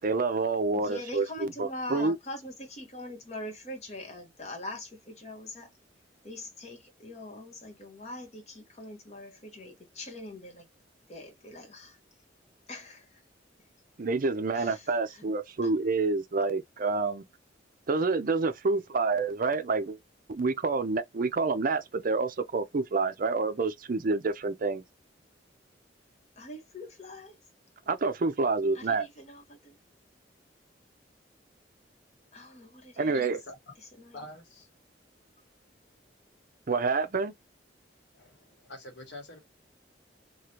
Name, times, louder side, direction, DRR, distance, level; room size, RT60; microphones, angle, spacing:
voice 1, 0.0-2.2 14.0-17.2 17.9-20.0 20.3-24.8 27.9-29.1 33.0-33.4 36.7-37.3, right 4 dB, 50° right, 0.5 m, -28 dB
voice 2, 0.7-5.7 6.2-10.7 11.1-12.0 12.7-13.2 14.5-15.2 15.6-15.7 26.4-27.4 28.7-29.8 32.3-33.3 34.0-34.2, left 1 dB, 40° left, 1.1 m, -43 dB
voice 3, 33.1-33.6 34.1-34.7 38.1-39.4, left 1 dB, 75° left, 1.2 m, -46 dB
3.1 x 2.3 x 2.8 m
head